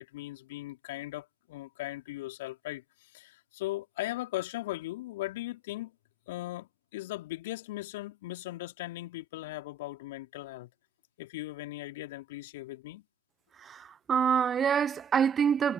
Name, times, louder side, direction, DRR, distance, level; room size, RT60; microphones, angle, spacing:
voice 1, 0.0-5.9 6.3-10.7 11.2-13.0, left 17 dB, 25° left, 3.3 m, -38 dB
voice 2, 13.6-15.7, right 7 dB, 10° right, 0.8 m, -26 dB
figure-of-eight pair, 150°, 0 cm